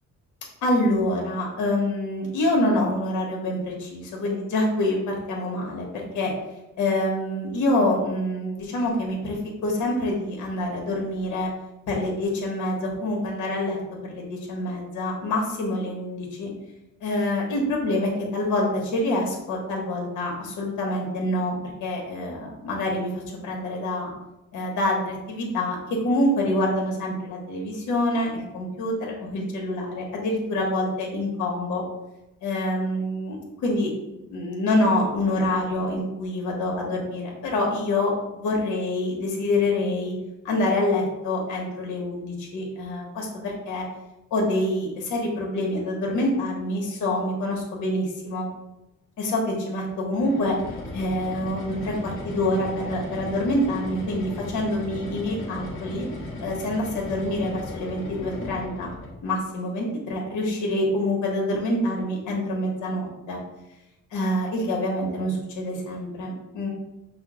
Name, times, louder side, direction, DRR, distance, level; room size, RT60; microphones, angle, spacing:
voice 1, 0.6-6.3 6.8-11.5 11.9-16.5 17.0-21.5 21.8-24.1 24.5-25.8 26.0-31.8 32.4-40.1 40.4-43.8 44.3-48.5 49.2-50.6 50.9-56.1 56.4-58.9 59.2-63.4 64.1-66.7, left 1 dB, 75° left, -1 dB, 1.1 m, -26 dB
sound 1, 50.1-59.2, left 2 dB, 40° left, 1.2 m, -36 dB
5.4 x 2.0 x 3.7 m, 0.95 s
cardioid pair, 90°, 30 cm